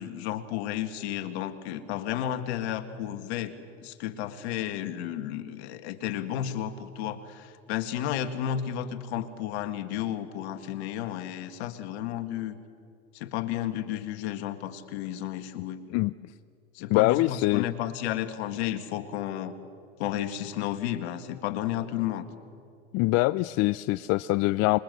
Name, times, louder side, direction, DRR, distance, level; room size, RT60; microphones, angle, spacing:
voice 1, 0.0-3.5 3.8-12.6 13.1-15.8 16.7-19.5 20.0-22.3, left 11 dB, 70° left, 9 dB, 2.0 m, -32 dB
voice 2, 16.9-17.7 22.9-24.8, left 19 dB, 50° left, 15 dB, 0.6 m, -24 dB
26.0 x 22.5 x 7.9 m, 2.3 s
hypercardioid pair, 100°, 34 cm